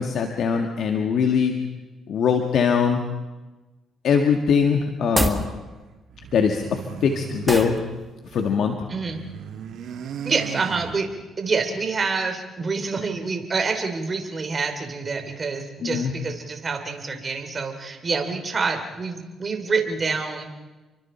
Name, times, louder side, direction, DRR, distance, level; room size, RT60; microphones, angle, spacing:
voice 1, 0.0-1.6 2.1-3.0 4.0-5.5 6.3-7.8 8.2-8.9 15.8-16.1, left 6 dB, 65° left, 4 dB, 1.8 m, -22 dB
sound 1, 5.0-5.5 7.5-7.8, right 2 dB, 15° right, 1.8 m, -24 dB
sound 2, 6.1-8.5 8.8-11.4, right 8 dB, 75° right, 2.0 m, -37 dB
voice 2, 8.9-9.2 10.2-11.1 11.4-20.5, right 4 dB, 35° right, 5 dB, 3.2 m, -27 dB
30.0 x 23.5 x 4.5 m, 1.2 s
cardioid pair, 90°, 0 cm